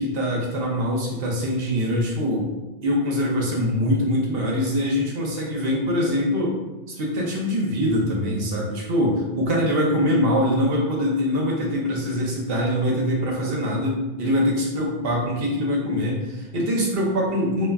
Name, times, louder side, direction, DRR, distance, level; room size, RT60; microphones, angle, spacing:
voice 1, 0.0-2.5 2.8-6.6 6.9-17.7, equal, 65° right, -2 dB, 0.8 m, -23 dB
3.6 x 2.2 x 2.2 m, 1.1 s
omnidirectional pair, 1.1 m